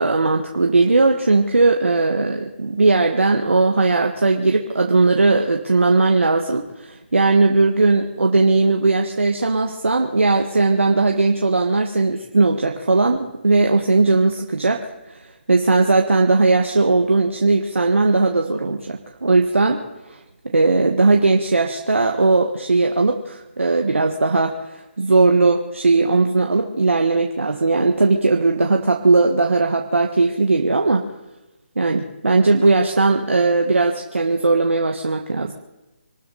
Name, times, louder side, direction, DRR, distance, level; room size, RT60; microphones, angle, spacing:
voice 1, 0.0-15.2 15.5-19.8 20.1-20.2 20.5-31.0 31.8-35.5, right 3 dB, 90° right, 2 dB, 1.7 m, -18 dB
26.0 x 13.0 x 4.2 m, 1.0 s
figure-of-eight pair, 155°, 7 cm